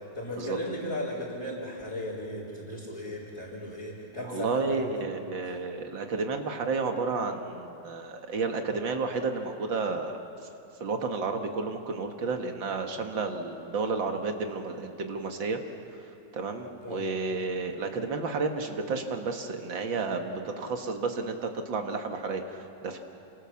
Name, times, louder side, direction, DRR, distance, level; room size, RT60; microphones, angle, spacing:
voice 1, 0.1-5.0 16.8-17.0, left 1 dB, 15° left, -7 dB, 3.7 m, -36 dB
voice 2, 4.2-10.2 10.8-15.6 16.3-23.0, right 4 dB, 80° right, 4 dB, 2.5 m, -31 dB
27.5 x 27.5 x 7.2 m, 2.9 s
omnidirectional pair, 2.0 m